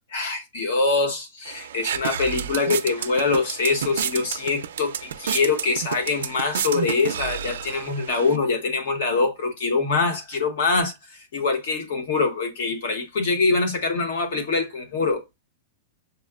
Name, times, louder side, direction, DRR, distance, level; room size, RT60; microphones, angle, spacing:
voice 1, 0.1-15.3, left 4 dB, 60° left, 1.3 m, -24 dB
sound 1, 1.5-8.4, right 9 dB, 85° right, 0.4 m, -31 dB
6.9 x 2.4 x 2.4 m
supercardioid pair, 165°, 0 cm